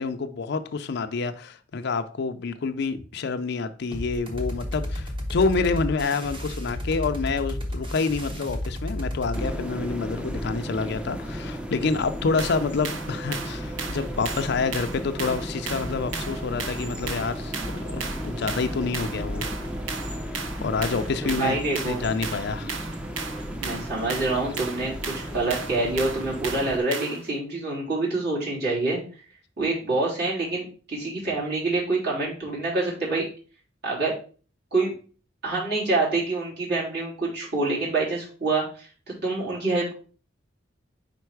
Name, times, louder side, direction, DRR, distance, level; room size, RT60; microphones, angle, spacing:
voice 1, 0.0-19.6 20.3-22.8, left 4 dB, 60° left, 0.5 m, -28 dB
sound 1, 3.9-9.5, left 1 dB, 25° right, 1.1 m, -32 dB
sound 2, 9.3-26.8, equal, 5° right, 0.6 m, -34 dB
sound 3, 12.4-27.3, right 5 dB, 75° right, 0.8 m, -36 dB
voice 2, 21.2-22.0 23.6-24.9 25.3-29.0 29.6-33.3 33.8-34.1 34.7-34.9 35.4-38.9 39.2-39.9, right 3 dB, 55° right, 3.1 m, -26 dB
5.2 x 4.5 x 4.6 m
head